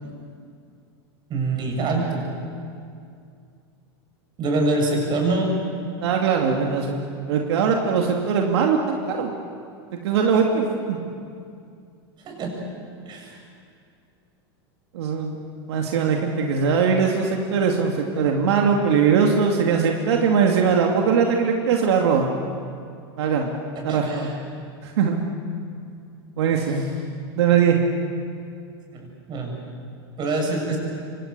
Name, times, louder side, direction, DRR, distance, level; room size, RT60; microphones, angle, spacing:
voice 1, 1.3-2.2 4.4-5.5 12.2-12.5 13.1-13.3 23.9-24.3 28.9-29.6 30.2-30.8, right 2 dB, 35° right, 1 dB, 7.4 m, -25 dB
voice 2, 6.0-6.9 7.3-9.3 9.9-11.0 14.9-15.4 15.7-22.3 23.2-23.5 23.8-24.3 24.8-25.2 26.4-26.8 27.4-27.8, right 6 dB, 80° right, 1 dB, 2.4 m, -21 dB
27.5 x 24.5 x 6.8 m, 2.3 s
supercardioid pair, 135°, 14 cm